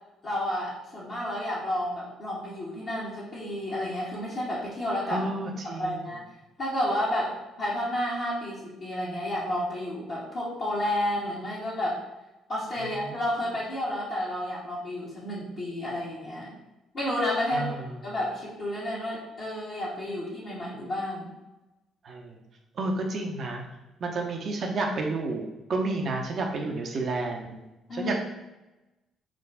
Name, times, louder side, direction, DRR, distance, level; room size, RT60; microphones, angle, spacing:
voice 1, 0.2-5.2 5.8-6.2 6.6-12.0 12.5-16.6 16.9-17.7 18.0-21.3 27.9-28.1, left 1 dB, 50° left, -10 dB, 1.3 m, -31 dB
voice 2, 5.1-6.1 12.8-13.2 17.5-17.9 22.0-22.4 22.7-23.6 24.0-27.7 27.9-28.2, right 2 dB, 50° right, 2 dB, 0.7 m, -31 dB
4.8 x 2.4 x 3.6 m, 1.0 s
figure-of-eight pair, 45°, 0 cm